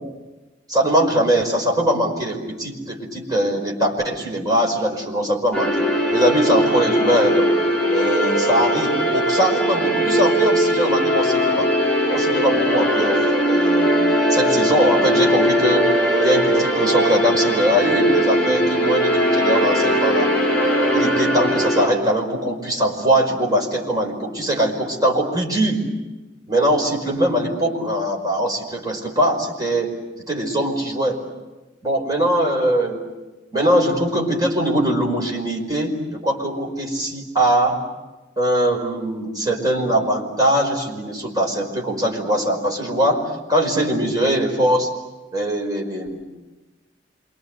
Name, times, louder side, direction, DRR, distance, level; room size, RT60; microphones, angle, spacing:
voice 1, 0.7-5.9 6.1-7.5 7.9-11.7 12.1-13.9 14.3-15.9 16.2-20.3 20.9-25.8 26.5-31.2 31.8-33.0 33.5-37.8 38.4-44.9 45.3-46.2, right 1 dB, 20° right, 0 dB, 5.3 m, -21 dB
sound 1, 5.5-21.9, equal, 5° left, 4.9 m, -19 dB
28.0 x 25.0 x 8.1 m, 1.1 s
head